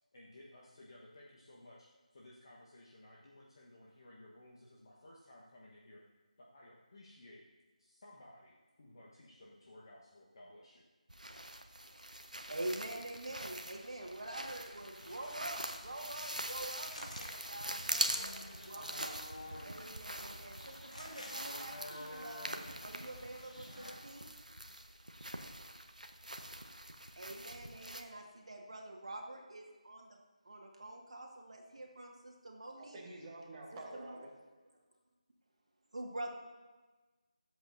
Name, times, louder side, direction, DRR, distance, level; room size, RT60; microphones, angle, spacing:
voice 1, 0.1-1.9 2.1-6.0 6.4-7.5 7.8-10.8, left 1 dB, 40° left, -4 dB, 1.4 m, -57 dB
sound 1, 11.1-28.0, right 1 dB, 80° right, 1.0 m, -43 dB
voice 2, 11.8-22.5 22.8-24.3 27.2-30.2 30.4-33.0 33.7-34.2 35.9-36.3, right 1 dB, 55° right, 1 dB, 1.9 m, -46 dB
sound 2, 15.0-23.9, left 1 dB, 75° left, 2.2 m, -51 dB
voice 3, 32.8-34.3, right 2 dB, 15° right, -5 dB, 1.6 m, -48 dB
23.0 x 8.1 x 2.7 m, 1.2 s
figure-of-eight pair, 160°, 4 cm